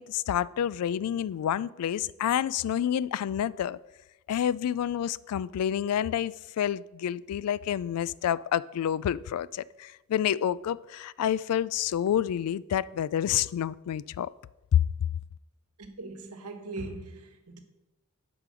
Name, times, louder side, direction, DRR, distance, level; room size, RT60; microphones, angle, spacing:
voice 1, 0.0-3.8 4.3-14.3 14.7-14.8, left 10 dB, 85° left, 0.3 m, -28 dB
voice 2, 15.8-17.6, right 2 dB, 90° right, 1.1 m, -40 dB
8.3 x 5.1 x 6.2 m
head